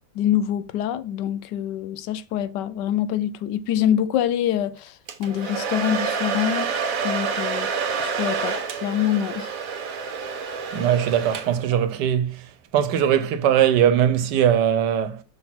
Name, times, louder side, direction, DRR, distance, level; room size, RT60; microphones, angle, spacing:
voice 1, 0.2-4.9 5.2-6.7 7.0-7.7 8.0-9.6, left 10 dB, 85° left, 1.2 m, -25 dB
Domestic sounds home sounds, 5.1-11.8, right 5 dB, 60° right, 1.2 m, -28 dB
voice 2, 10.7-12.5 12.7-15.2, right 9 dB, 85° right, 1.4 m, -20 dB
5.7 x 4.0 x 5.9 m
omnidirectional pair, 1.8 m